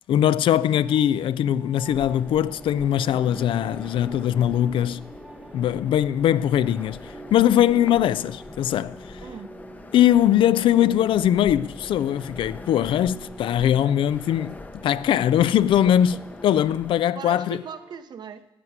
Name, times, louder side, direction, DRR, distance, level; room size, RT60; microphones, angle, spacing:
voice 1, 0.1-5.0 5.5-9.0 9.9-14.5 14.8-16.1 16.4-17.6, left 11 dB, 65° left, 0.4 m, -21 dB
sound 1, 0.8-18.0, right 2 dB, 10° right, 1.1 m, -46 dB
sound 2, 1.8-17.0, left 2 dB, 15° left, 0.7 m, -43 dB
voice 2, 9.2-9.5 13.6-13.9 14.3-14.4 15.9-16.0 17.1-18.5, right 7 dB, 50° right, 0.8 m, -39 dB
11.0 x 8.0 x 9.3 m
cardioid pair, 135°, 9 cm